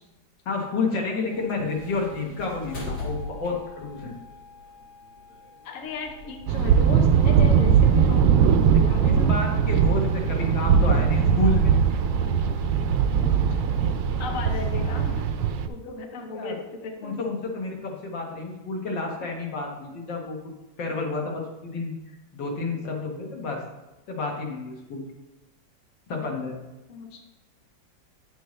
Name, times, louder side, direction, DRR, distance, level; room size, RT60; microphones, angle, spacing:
voice 1, 0.5-4.1 8.1-8.2 9.3-11.7 16.3-16.6 17.0-20.4 20.8-21.9 22.3-23.6 24.1-25.0 26.1-26.5, left 3 dB, 90° left, 0 dB, 2.2 m, -30 dB
sound 1, 1.2-15.2, left 2 dB, 70° left, 2.4 m, -40 dB
voice 2, 5.6-8.4 8.7-9.4 13.2-13.3 14.2-15.2 15.7-17.2 26.9-27.2, left 3 dB, 50° left, 3 dB, 1.3 m, -35 dB
sound 2, 6.5-15.7, right 7 dB, 90° right, 1.3 m, -20 dB
9.8 x 7.9 x 3.2 m, 1.0 s
omnidirectional pair, 1.9 m